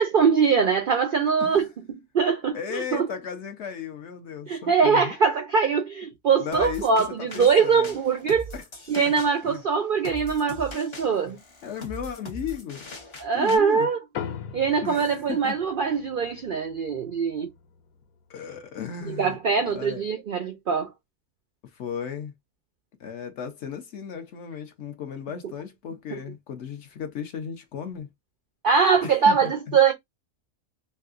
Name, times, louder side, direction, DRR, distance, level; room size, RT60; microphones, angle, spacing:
voice 1, 0.0-3.1 4.5-8.5 8.9-11.4 13.2-14.0 14.5-17.5 19.0-20.9 26.1-26.2 28.6-29.9, right 6 dB, 75° right, 0.4 m, -22 dB
voice 2, 2.5-5.2 6.4-8.0 8.5-8.6 9.4-9.6 11.2-12.9 13.3-13.9 14.8-15.6 18.3-19.4 19.7-20.1 21.7-22.3 23.0-28.1 29.0-29.8, left 7 dB, 60° left, 0.8 m, -35 dB
sound 1, 6.5-13.6, equal, 45° left, 0.3 m, -41 dB
sound 2, 14.1-18.9, left 8 dB, 80° left, 1.1 m, -41 dB
3.2 x 2.6 x 2.4 m
omnidirectional pair, 1.5 m